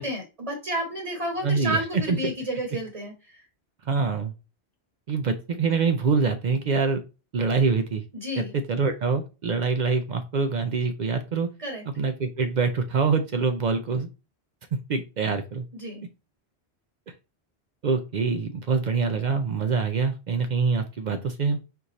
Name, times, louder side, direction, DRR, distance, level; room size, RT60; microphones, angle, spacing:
voice 1, 0.0-3.4 8.1-8.5 11.6-11.8 15.7-16.0, right 1 dB, 35° right, 1 dB, 1.1 m, -31 dB
voice 2, 1.4-1.8 2.1-2.2 3.9-4.3 5.1-7.0 7.3-8.0 8.4-11.5 12.0-14.1 14.9-15.7 17.8-21.6, right 4 dB, 55° right, 7 dB, 0.5 m, -25 dB
4.6 x 2.6 x 4.0 m, 0.30 s
omnidirectional pair, 1.1 m